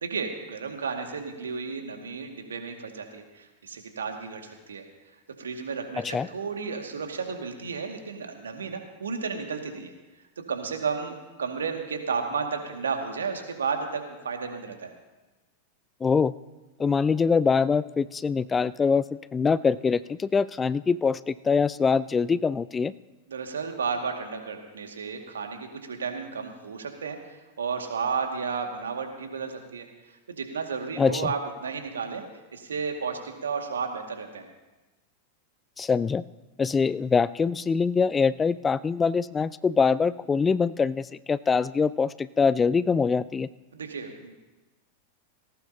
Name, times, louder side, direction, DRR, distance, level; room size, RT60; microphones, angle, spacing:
voice 1, 0.0-4.8 5.4-9.9 10.5-14.9 23.3-27.2 27.6-29.9 30.3-32.2 32.5-34.4 43.7-44.3, right 5 dB, 70° right, 4 dB, 2.1 m, -33 dB
voice 2, 6.0-6.3 16.0-16.3 16.8-19.1 19.3-22.9 31.0-31.3 35.8-36.2 36.6-43.5, left 5 dB, 15° left, 19 dB, 0.3 m, -24 dB
18.5 x 18.0 x 2.9 m, 1.1 s
figure-of-eight pair, 90°, 0 cm